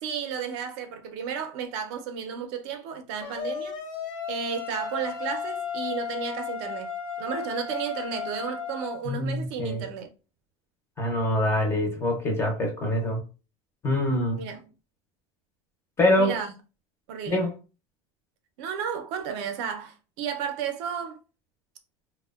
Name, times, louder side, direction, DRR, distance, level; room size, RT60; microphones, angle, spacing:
voice 1, 0.0-3.8 4.3-6.9 7.2-10.1 14.4-14.6 16.2-16.5 17.1-17.4 18.6-21.2, right 7 dB, 55° right, 0.4 m, -33 dB
sound 1, 3.2-9.0, left 7 dB, 75° left, 0.7 m, -34 dB
voice 2, 9.1-9.8 11.0-13.2 13.8-14.4 16.0-16.3 17.3-17.5, left 1 dB, 15° left, 0.4 m, -24 dB
2.7 x 2.0 x 2.2 m
supercardioid pair, 170°, 17 cm